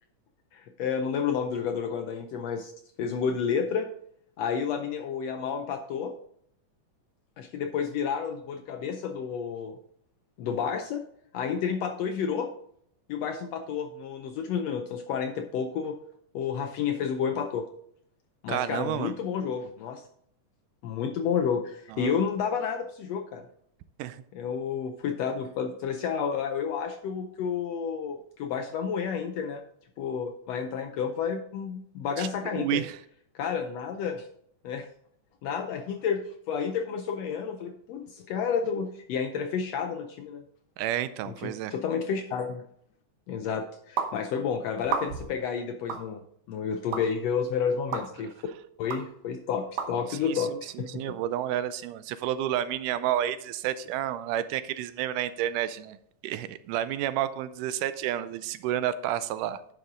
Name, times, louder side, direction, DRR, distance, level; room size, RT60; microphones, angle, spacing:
voice 1, 0.5-2.7 3.0-3.9 4.4-6.1 7.4-9.8 10.4-11.0 11.3-12.5 13.1-16.0 16.3-17.6 18.4-20.0 20.8-23.4 24.3-29.6 30.0-32.8 33.4-34.3 34.6-34.8 35.4-40.4 41.3-42.6 43.3-46.2 46.5-48.3 48.8-51.0, left 6 dB, 80° left, 6 dB, 1.5 m, -30 dB
voice 2, 18.5-19.1 21.9-22.1 24.0-24.2 32.2-33.0 40.8-41.7 50.3-56.0 56.2-59.7, right 11 dB, 85° right, 14 dB, 2.1 m, -30 dB
sound 1, 44.0-44.1 44.8-45.3 45.9-46.0 46.9-47.0 47.9-48.0 48.9-49.0 49.8-49.9, right 6 dB, 65° right, 1.9 m, -30 dB
10.5 x 6.4 x 3.7 m, 0.68 s
omnidirectional pair, 3.7 m